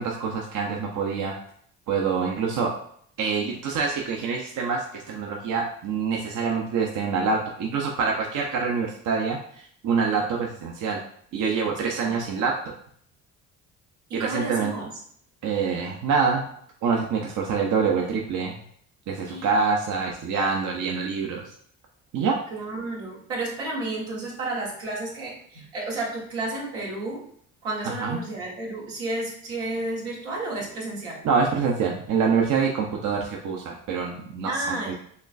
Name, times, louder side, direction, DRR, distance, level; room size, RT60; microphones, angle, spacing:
voice 1, 0.0-1.3 1.9-2.7 3.2-9.4 9.8-11.0 11.3-12.5 14.1-14.7 15.4-16.4 16.8-18.5 19.1-21.4 22.1-22.4 27.8-28.2 31.2-34.9, right 5 dB, 50° right, 0 dB, 0.7 m, -25 dB
voice 2, 11.8-12.1 14.1-14.9 19.3-19.5 22.5-27.2 27.6-31.2 34.4-34.9, right 2 dB, 80° right, -4 dB, 1.5 m, -32 dB
4.2 x 3.1 x 2.6 m, 0.63 s
hypercardioid pair, 55°, 38 cm